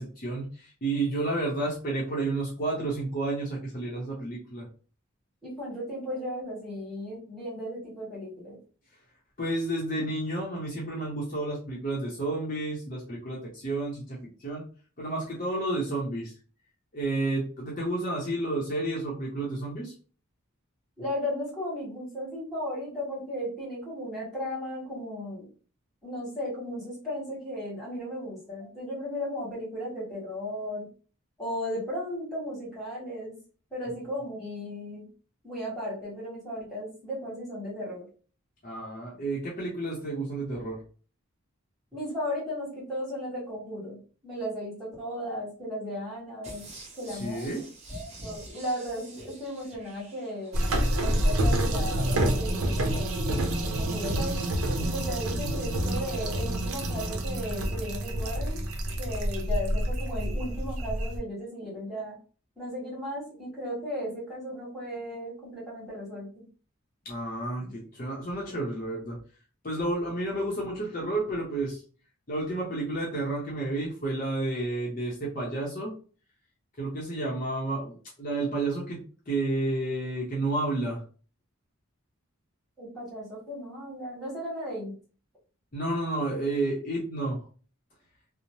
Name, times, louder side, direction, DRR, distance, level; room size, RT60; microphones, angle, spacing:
voice 1, 0.0-4.7 9.4-14.7 15.0-16.3 16.9-19.9 38.6-40.8 47.1-47.7 67.0-69.2 69.6-71.8 72.3-75.9 76.8-79.0 79.3-81.0 85.7-87.4, right 2 dB, 40° left, -4 dB, 0.6 m, -31 dB
voice 2, 5.4-8.6 21.0-25.5 26.0-30.9 31.4-33.4 33.7-35.1 35.4-38.0 41.9-44.0 44.2-46.7 47.0-47.5 47.9-50.7 51.0-54.4 54.8-58.6 59.0-62.2 62.6-66.5 67.6-67.7 82.8-84.9, equal, ahead, -6 dB, 1.4 m, -35 dB
sound 1, 46.4-50.9 51.3-51.4, right 1 dB, 30° right, 0.6 m, -46 dB
sound 2, 50.5-61.2, right 1 dB, 90° right, 0.6 m, -28 dB
2.7 x 2.0 x 3.0 m, 0.39 s
head